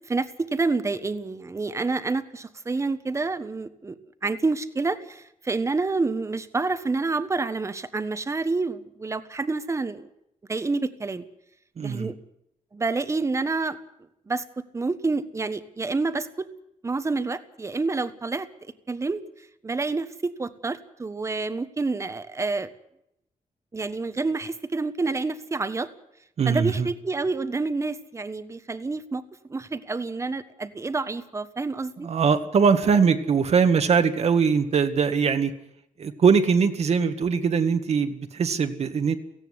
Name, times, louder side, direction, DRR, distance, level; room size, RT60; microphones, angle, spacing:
voice 1, 0.1-4.0 4.2-10.1 10.5-11.3 11.8-12.1 12.7-13.8 14.3-14.4 14.7-16.5 16.8-18.5 18.9-19.2 19.6-22.7 23.7-25.9 26.5-29.2 29.5-32.1, right 3 dB, 20° right, 11 dB, 1.4 m, -28 dB
voice 2, 11.8-12.1 26.4-26.9 32.0-35.5 36.0-39.1, right 6 dB, 50° right, 7 dB, 1.8 m, -21 dB
17.5 x 16.5 x 9.6 m, 0.79 s
wide cardioid pair, 175°, 13 cm